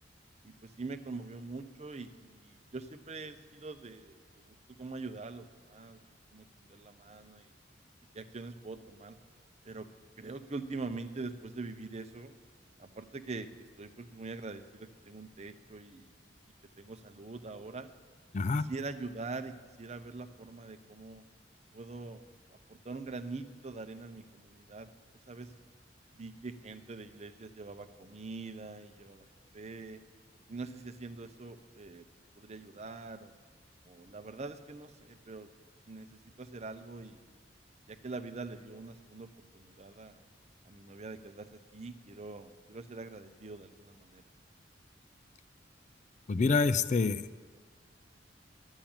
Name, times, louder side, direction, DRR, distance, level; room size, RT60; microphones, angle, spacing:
voice 1, 0.4-4.2 4.8-6.0 6.3-7.5 8.1-9.2 9.6-9.9 10.2-12.3 12.8-13.5 13.8-16.1 16.8-17.9 18.7-21.2 21.7-22.2 22.7-24.9 25.3-25.5 26.2-29.3 29.5-30.0 30.5-32.1 32.4-33.3 33.8-35.5 35.9-37.4 37.9-40.2 40.7-44.2, right 3 dB, 40° right, 9 dB, 0.7 m, -43 dB
voice 2, 18.3-18.7 46.3-47.3, left 4 dB, 40° left, 14 dB, 0.4 m, -27 dB
11.5 x 7.3 x 8.9 m, 1.6 s
head